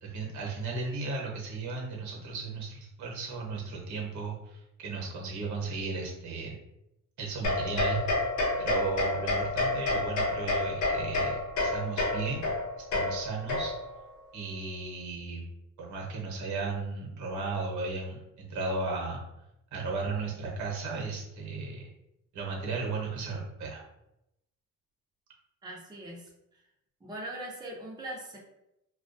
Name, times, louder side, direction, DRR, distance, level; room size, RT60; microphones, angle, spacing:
voice 1, 0.0-6.6 7.2-8.0 8.6-12.5 12.9-13.7 14.3-15.4 15.8-19.2 19.7-21.9 22.3-23.8, right 4 dB, 70° right, -1 dB, 0.9 m, -35 dB
sound 1, 7.4-14.0, left 2 dB, 70° left, 0.8 m, -29 dB
voice 2, 25.6-26.3 27.0-28.4, right 1 dB, 15° right, -3 dB, 0.6 m, -40 dB
2.3 x 2.2 x 2.5 m, 0.86 s
cardioid pair, 90°, 30 cm